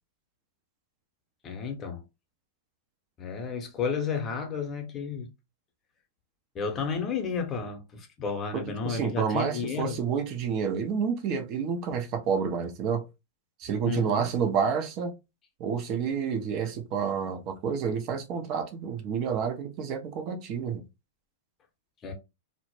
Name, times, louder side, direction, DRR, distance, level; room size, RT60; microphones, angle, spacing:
voice 1, 1.4-2.0 3.2-5.3 6.5-10.0 13.8-14.3 22.0-22.1, left 5 dB, 25° left, 0.6 m, -32 dB
voice 2, 8.5-13.0 13.6-15.1 15.6-20.8, right 6 dB, 40° right, 0.5 m, -29 dB
2.1 x 2.0 x 2.9 m
hypercardioid pair, 105°, 0 cm